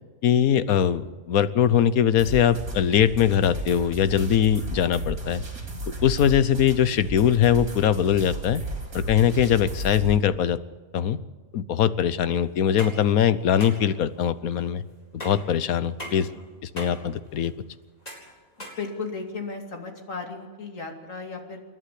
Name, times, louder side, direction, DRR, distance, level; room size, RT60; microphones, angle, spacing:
voice 1, 0.2-5.4 6.0-8.6 8.9-10.6 10.9-11.2 11.5-14.8 15.2-16.3 16.6-17.5, left 9 dB, 90° left, 14 dB, 1.3 m, -21 dB
sound 1, 2.2-10.2, right 1 dB, 85° right, 4.0 m, -34 dB
sound 2, 12.5-19.5, equal, 30° left, 4.4 m, -41 dB
voice 2, 18.8-21.6, left 4 dB, 65° left, 3 dB, 2.9 m, -35 dB
28.5 x 11.0 x 8.4 m, 1.4 s
omnidirectional pair, 1.5 m